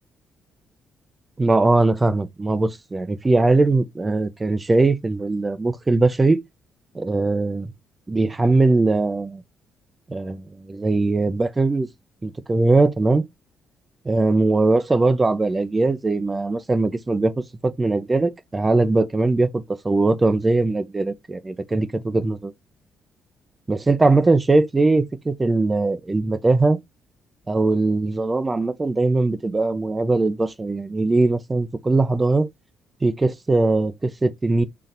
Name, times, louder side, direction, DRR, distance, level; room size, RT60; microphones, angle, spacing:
voice 1, 1.4-6.4 6.9-7.7 8.1-9.4 10.1-11.9 12.2-13.2 14.1-17.3 17.6-22.5 23.7-26.8 27.5-32.5 33.0-34.6, right 3 dB, 20° right, 0.6 m, -20 dB
4.0 x 3.2 x 2.6 m
cardioid pair, 90°, 0 cm